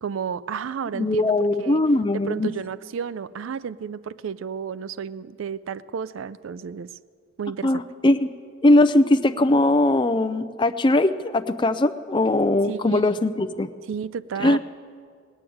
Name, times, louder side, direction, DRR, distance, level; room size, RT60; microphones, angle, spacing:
voice 1, 0.0-1.8 2.1-6.9 7.4-7.8 12.6-13.3 13.9-14.6, right 7 dB, 80° right, 17 dB, 0.4 m, -32 dB
voice 2, 0.9-2.5 7.6-8.3 8.6-13.7 14.4-14.6, left 2 dB, 25° left, 9 dB, 0.5 m, -20 dB
18.5 x 9.9 x 7.8 m, 2.1 s
head